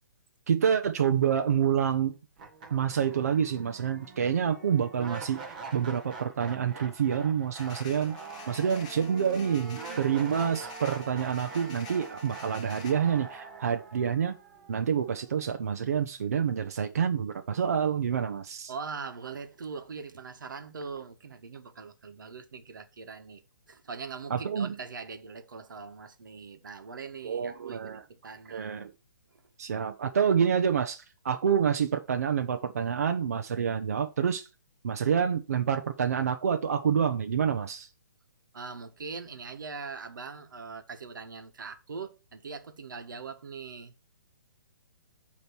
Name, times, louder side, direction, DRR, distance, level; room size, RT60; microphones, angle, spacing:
voice 1, 0.5-2.1 2.7-8.2 8.5-14.3 14.7-18.7 24.3-24.7 27.2-28.0 28.5-28.9 29.6-34.5 34.8-37.9, right 7 dB, 50° right, 0.7 m, -27 dB
sound 1, 1.9-2.0 2.4-15.4, right 4 dB, 25° right, 1.2 m, -44 dB
sound 2, 7.6-12.9, left 7 dB, 20° left, 0.6 m, -49 dB
voice 2, 8.5-10.1 18.7-23.4 23.7-28.7 29.3-29.4 38.5-43.9, right 5 dB, 85° right, 1.2 m, -42 dB
8.4 x 3.1 x 5.9 m
hypercardioid pair, 180°, 10 cm